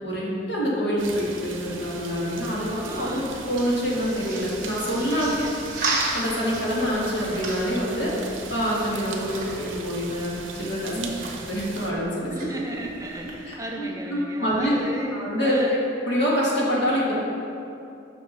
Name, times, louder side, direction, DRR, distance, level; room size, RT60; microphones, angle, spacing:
voice 1, 0.0-5.3 6.1-8.1 8.5-10.9 11.5-12.5 13.4-14.7 15.1-15.8 16.1-17.1, equal, 55° left, -5 dB, 1.6 m, -26 dB
sound 1, 1.0-11.9, right 4 dB, 75° right, 0.7 m, -39 dB
voice 2, 2.8-3.3 5.1-5.5 10.9-11.3 12.3-15.8, right 1 dB, 15° right, 0 dB, 0.3 m, -34 dB
sound 2, 2.9-13.6, right 3 dB, 40° right, 1.3 m, -36 dB
5.9 x 4.9 x 5.5 m, 2.7 s
head